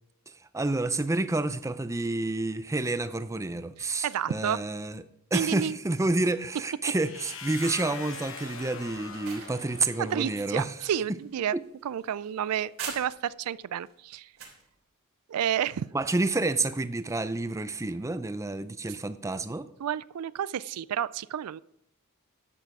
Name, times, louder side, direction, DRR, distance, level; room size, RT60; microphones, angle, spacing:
voice 1, 0.5-5.0 5.3-10.8 15.9-19.7, right 2 dB, 15° right, 13 dB, 0.5 m, -29 dB
voice 2, 4.0-4.6 5.3-5.8 10.0-11.6 11.8-14.3 15.3-15.9 19.8-21.6, right 9 dB, 85° right, 20 dB, 0.4 m, -30 dB
sound 1, 7.0-10.8, left 6 dB, 60° left, 1.3 m, -43 dB
sound 2, 8.9-13.4 13.9-14.6, right 6 dB, 60° right, 3.3 m, -44 dB
11.0 x 8.1 x 4.7 m, 0.74 s
head